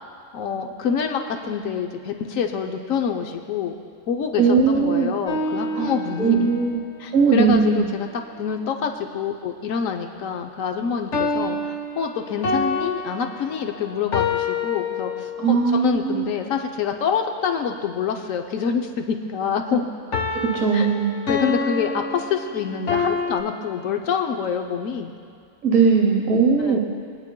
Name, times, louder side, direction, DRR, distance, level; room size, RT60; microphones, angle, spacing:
voice 1, 0.3-3.8 4.1-6.5 7.0-19.9 20.7-20.9 21.3-25.1 26.7-26.8, left 6 dB, 90° left, 4 dB, 1.1 m, -26 dB
voice 2, 4.4-5.1 5.7-5.9 6.2-6.8 7.1-7.8 15.4-16.3 20.3-21.1 25.6-26.8, right 5 dB, 75° right, -1 dB, 1.3 m, -19 dB
sound 1, 5.3-6.6 11.1-15.7 20.1-23.4, left 3 dB, 65° left, 1.3 m, -27 dB
25.5 x 9.7 x 2.2 m, 2.3 s
omnidirectional pair, 1.4 m